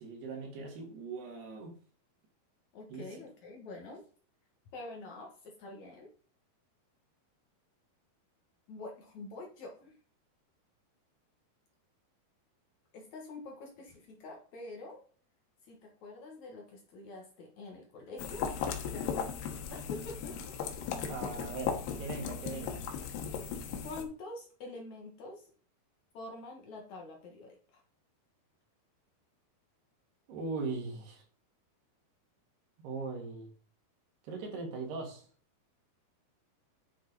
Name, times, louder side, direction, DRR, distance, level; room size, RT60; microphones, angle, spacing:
voice 1, 0.0-1.7 2.9-3.1 21.1-22.8 30.3-31.2 32.8-33.5 34.3-35.3, right 4 dB, 80° right, 4.3 m, -40 dB
voice 2, 2.7-4.0 4.7-6.1 8.7-9.9 12.9-15.0 15.7-18.5 18.9-19.4 19.7-20.6 22.5-22.6 23.8-25.5 26.1-27.8, left 2 dB, 55° left, 2.4 m, -46 dB
sound 1, 18.2-24.0, left 7 dB, 85° left, 3.2 m, -37 dB
10.5 x 6.2 x 4.1 m
omnidirectional pair, 4.6 m